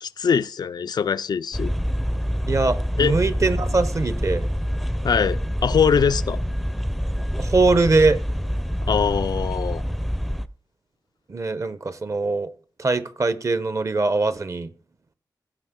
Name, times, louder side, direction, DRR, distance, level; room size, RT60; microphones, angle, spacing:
voice 1, 0.0-1.7 3.0-3.1 5.0-6.4 8.8-9.8, left 6 dB, 70° left, 0.4 m, -22 dB
sound 1, 1.5-10.5, equal, ahead, 0.5 m, -26 dB
voice 2, 2.5-4.5 7.4-8.2 11.3-12.5 12.8-14.7, right 3 dB, 45° right, 0.8 m, -22 dB
16.0 x 6.1 x 3.7 m
wide cardioid pair, 75°, 7 cm